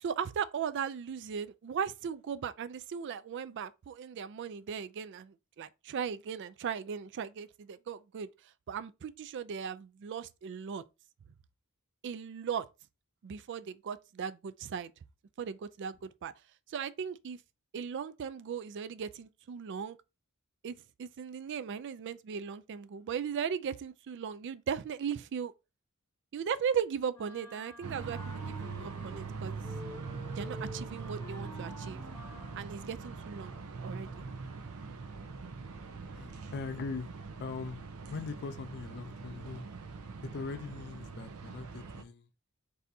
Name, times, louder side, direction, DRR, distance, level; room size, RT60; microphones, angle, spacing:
voice 1, 0.0-8.3 8.7-10.8 12.0-12.7 13.2-14.9 15.4-16.3 16.7-17.4 17.7-20.0 20.6-25.5 26.3-29.6 30.3-32.0 32.6-34.2, right 7 dB, 55° right, 0.3 m, -37 dB
Wind instrument woodwind instrument, 27.1-29.3 29.6-32.7, left 1 dB, 15° left, 0.9 m, -49 dB
sound 1, 27.8-42.0, right 4 dB, 85° right, 0.7 m, -42 dB
voice 2, 36.1-37.1 37.4-39.7 40.3-42.3, left 4 dB, 50° left, 0.4 m, -41 dB
4.1 x 3.4 x 2.7 m
head